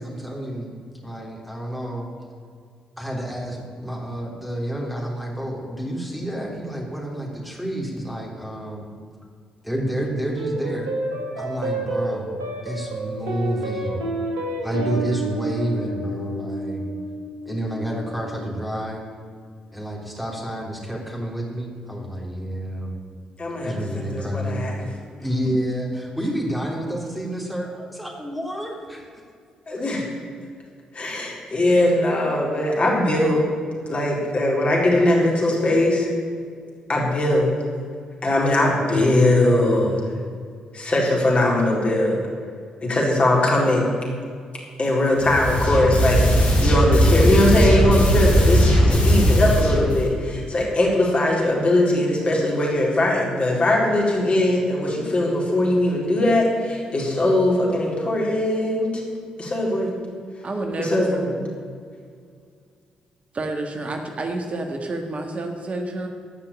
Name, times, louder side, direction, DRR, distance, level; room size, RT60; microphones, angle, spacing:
voice 1, 0.0-2.1 3.0-8.9 9.6-10.9 11.4-14.1 14.6-16.8 17.5-19.1 19.7-23.0 23.6-24.7 25.2-29.1 29.8-30.0, right 1 dB, ahead, -1 dB, 3.4 m, -29 dB
sound 1, 10.4-19.0, right 2 dB, 85° right, 1.6 m, -30 dB
voice 2, 23.4-24.9 29.7-30.1 30.9-33.4 33.9-36.1 36.9-37.5 38.2-40.1 40.7-42.2 42.8-43.9 44.8-46.2 46.6-59.0 59.4-59.9 60.8-61.4, left 1 dB, 45° left, -3 dB, 4.1 m, -20 dB
sound 2, 45.2-50.1, equal, 70° left, 4.1 m, -18 dB
voice 3, 60.4-61.6 63.3-66.1, right 2 dB, 45° right, 4 dB, 1.5 m, -29 dB
14.0 x 5.8 x 8.6 m, 2.2 s
hypercardioid pair, 40°, 3 cm